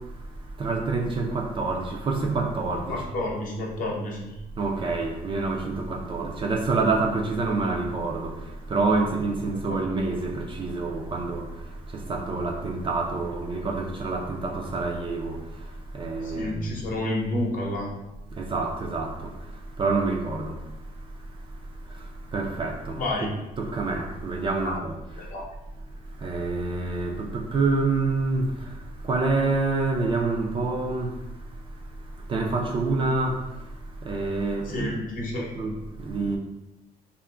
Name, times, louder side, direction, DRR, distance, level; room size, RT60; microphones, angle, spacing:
voice 1, 0.6-3.0 4.6-8.3 8.7-11.4 12.1-15.3 15.9-16.5 18.4-19.1 19.8-20.5 22.3-23.3 23.6-24.9 26.2-28.5 29.1-31.1 32.3-33.3 34.1-35.0 35.6-35.7 36.1-36.4, right 3 dB, 30° right, 0.4 m, -27 dB
voice 2, 2.9-4.4 16.2-17.9 23.0-23.3 24.6-24.8 25.1-25.4 34.6-35.5, left 1 dB, 55° left, 0.8 m, -30 dB
2.5 x 2.0 x 3.2 m
cardioid pair, 110°, 17 cm